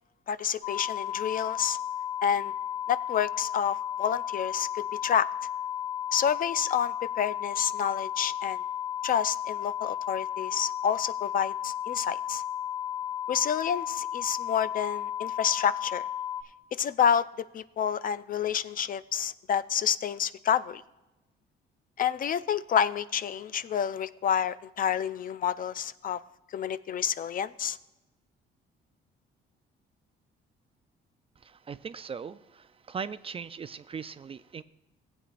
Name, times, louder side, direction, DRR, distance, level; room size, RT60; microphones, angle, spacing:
voice 1, 0.3-1.8 2.2-2.5 2.9-5.3 6.1-8.6 9.0-12.4 13.3-16.0 16.8-17.3 17.5-20.8 22.0-26.2 26.5-27.8, left 8 dB, 45° left, 16 dB, 0.4 m, -29 dB
sound 1, 0.6-16.4, left 10 dB, 70° left, 1.1 m, -34 dB
voice 2, 31.4-34.6, right 6 dB, 30° right, 14 dB, 0.3 m, -39 dB
15.5 x 8.3 x 2.5 m, 0.99 s
cardioid pair, 95°, 20 cm